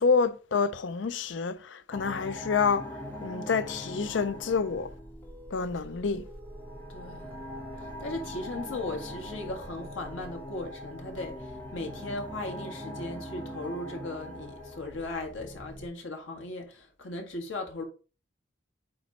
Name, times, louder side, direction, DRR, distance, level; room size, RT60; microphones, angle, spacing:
voice 1, 0.0-2.9 3.2-4.9 5.5-6.2, left 5 dB, 70° left, 0.5 m, -28 dB
sound 1, 1.9-15.9, equal, 10° left, 1.8 m, -41 dB
voice 2, 6.9-7.3 8.0-17.8, left 2 dB, 85° left, 1.7 m, -37 dB
8.5 x 3.0 x 4.1 m
head